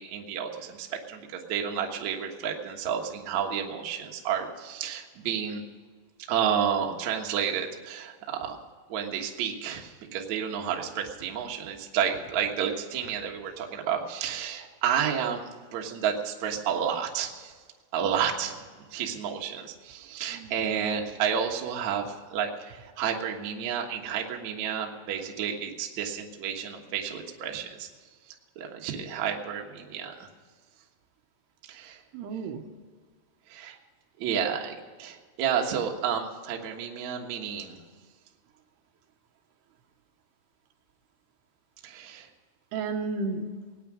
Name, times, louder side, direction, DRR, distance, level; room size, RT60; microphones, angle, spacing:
voice 1, 0.0-5.6 6.3-8.6 8.9-15.4 15.7-17.5 17.9-18.6 18.9-22.1 22.3-27.9 28.6-30.3 31.7-32.0 33.5-33.8 34.2-37.8 41.8-42.3, right 8 dB, 60° right, 1 dB, 2.1 m, -31 dB
voice 2, 20.3-21.1 32.1-32.7 42.7-43.4, right 4 dB, 80° right, 4 dB, 3.0 m, -33 dB
18.5 x 9.7 x 6.2 m, 1.5 s
omnidirectional pair, 5.0 m